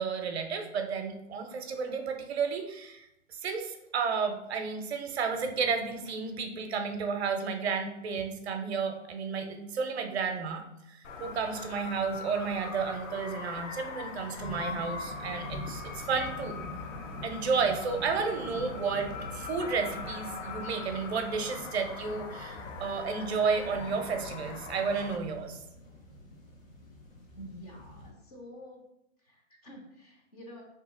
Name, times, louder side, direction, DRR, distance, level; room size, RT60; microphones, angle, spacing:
voice 1, 0.0-3.1 3.4-16.6 17.2-25.6, right 5 dB, 55° right, 5 dB, 0.6 m, -32 dB
sound 1, 11.0-25.2, left 4 dB, 75° left, 0.7 m, -42 dB
sound 2, 14.3-28.1, left 1 dB, 90° left, 1.1 m, -45 dB
voice 2, 27.3-28.9 29.2-30.6, equal, 30° left, -1 dB, 0.6 m, -48 dB
2.8 x 2.7 x 3.7 m, 0.83 s
hypercardioid pair, 165°, 38 cm